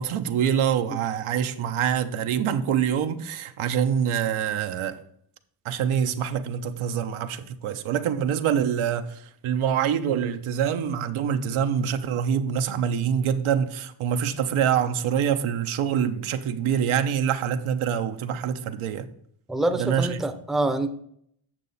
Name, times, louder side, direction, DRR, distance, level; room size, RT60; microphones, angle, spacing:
voice 1, 0.0-5.0 5.6-19.1 19.7-20.2, right 8 dB, 80° right, 0.9 m, -25 dB
voice 2, 19.5-20.9, right 2 dB, ahead, 0.6 m, -25 dB
8.9 x 6.7 x 4.1 m
cardioid pair, 115°, 49 cm